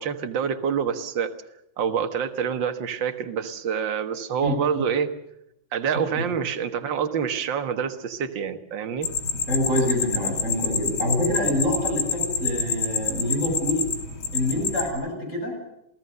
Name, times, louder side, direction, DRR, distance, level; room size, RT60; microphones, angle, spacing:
voice 1, 0.0-1.3 1.8-5.1 5.7-9.1, right 7 dB, 65° right, 8 dB, 2.2 m, -27 dB
voice 2, 4.4-4.8 6.2-6.3 9.5-13.8 14.3-15.6, left 1 dB, 35° left, 1 dB, 7.9 m, -26 dB
sound 1, 9.0-14.9, left 6 dB, 85° left, 3.7 m, -28 dB
28.5 x 17.5 x 6.8 m, 0.81 s
omnidirectional pair, 2.2 m